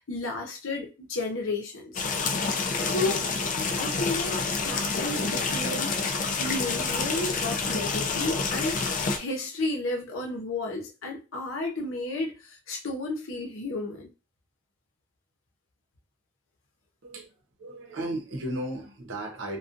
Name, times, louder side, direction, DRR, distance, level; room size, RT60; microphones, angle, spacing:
voice 1, 0.1-2.0 2.8-3.3 3.7-5.9 6.4-14.1, left 2 dB, 90° left, 0.7 m, -32 dB
sound 1, 1.9-9.2, left 4 dB, 40° left, 0.4 m, -28 dB
voice 2, 17.6-19.6, right 1 dB, 80° right, 0.7 m, -34 dB
2.5 x 2.2 x 2.5 m
head